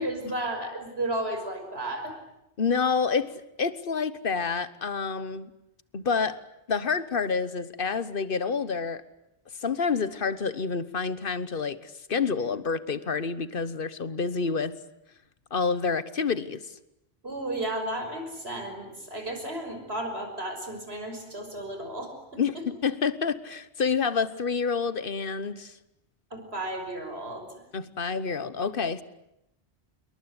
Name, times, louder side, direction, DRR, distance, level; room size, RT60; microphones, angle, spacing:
voice 1, 0.0-2.2 17.2-22.6 26.3-27.6, right 1 dB, 70° right, 5 dB, 6.1 m, -33 dB
voice 2, 2.6-5.5 5.9-6.4 6.7-9.0 9.6-14.7 15.5-16.6 22.4-25.8 27.7-29.0, left 5 dB, 55° left, 15 dB, 1.4 m, -28 dB
27.0 x 22.5 x 9.7 m, 0.86 s
omnidirectional pair, 1.1 m